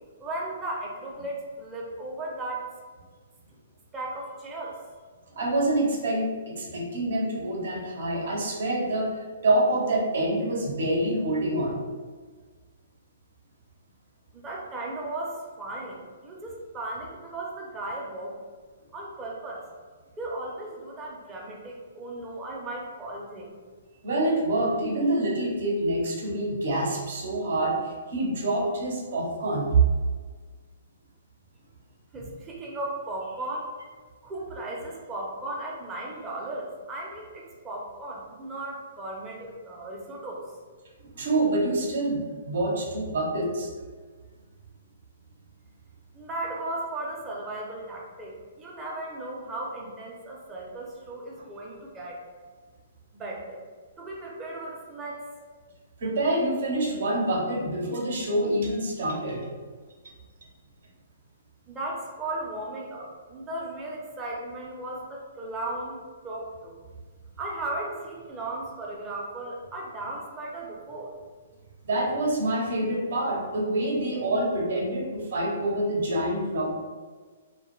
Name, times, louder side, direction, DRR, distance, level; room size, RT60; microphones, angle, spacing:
voice 1, 0.2-2.6 3.9-4.8 14.3-18.4 18.9-19.7 20.2-23.5 32.1-33.7 34.2-40.4 46.1-52.2 53.1-53.6 54.0-55.2 61.7-66.8 67.4-71.1, right 2 dB, 20° right, -3 dB, 0.5 m, -36 dB
voice 2, 5.4-9.2 9.4-11.8 24.0-27.8 28.1-29.8 41.1-43.7 56.0-59.4 71.8-76.7, right 1 dB, 65° right, -2 dB, 0.7 m, -26 dB
2.2 x 2.1 x 3.0 m, 1.5 s
hypercardioid pair, 135°, 0 cm